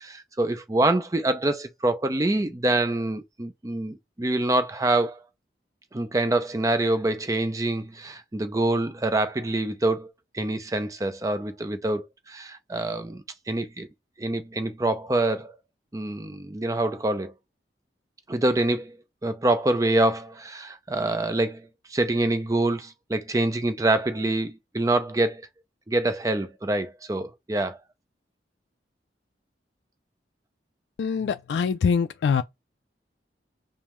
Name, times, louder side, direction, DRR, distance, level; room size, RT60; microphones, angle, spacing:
voice 1, 0.0-5.2 5.9-10.1 10.3-13.9 14.2-15.6 15.9-17.3 18.3-19.0 19.2-25.4 25.9-27.8, right 2 dB, 20° right, 0.5 m, -26 dB
voice 2, 31.0-32.4, left 6 dB, 80° left, 0.3 m, -24 dB
5.3 x 2.0 x 3.0 m
head